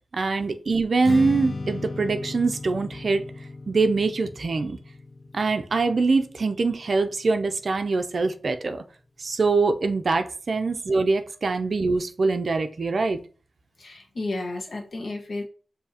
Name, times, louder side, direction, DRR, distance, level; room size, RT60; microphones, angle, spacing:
voice 1, 0.1-3.2 3.7-4.8 5.3-8.8 9.2-13.2, right 3 dB, 55° right, 0.4 m, -24 dB
Strum, 1.0-7.3, left 3 dB, 45° left, 0.5 m, -36 dB
voice 2, 13.8-15.4, left 2 dB, 65° left, 1.1 m, -32 dB
6.8 x 2.7 x 2.8 m
wide cardioid pair, 125°, 0 cm